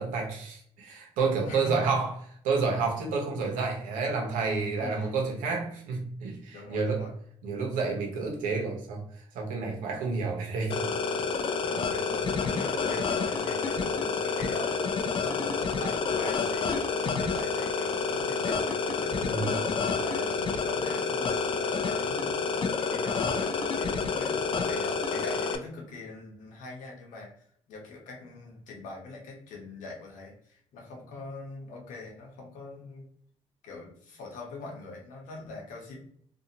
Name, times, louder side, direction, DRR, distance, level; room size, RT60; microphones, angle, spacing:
voice 1, 0.0-2.1 2.4-7.0 7.4-9.0 9.3-10.8 19.3-19.6, right 4 dB, 90° right, 0 dB, 0.8 m, -29 dB
voice 2, 1.5-1.9 4.8-5.3 6.5-7.1 11.6-14.9 15.2-19.2 19.8-22.4 22.8-27.3 27.7-33.0 33.6-36.0, left 3 dB, 80° left, 0 dB, 1.0 m, -42 dB
sound 1, 10.7-25.6, left 4 dB, 40° left, 0.4 m, -29 dB
2.6 x 2.4 x 2.7 m, 0.63 s
cardioid pair, 80°, 13 cm